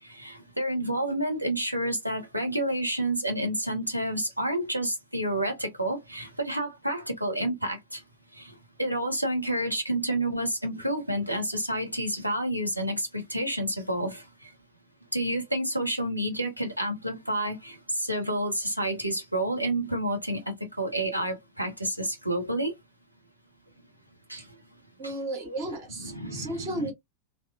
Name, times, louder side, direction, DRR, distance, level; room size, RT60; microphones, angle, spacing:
voice 1, 0.0-8.0 8.3-14.5 15.1-22.7 24.3-24.5 25.0-25.1 26.0-26.9, right 1 dB, 85° right, 0.7 m, -29 dB
voice 2, 25.0-26.9, right 1 dB, 45° right, 1.6 m, -34 dB
2.8 x 2.0 x 2.4 m
figure-of-eight pair, 90°, 0 cm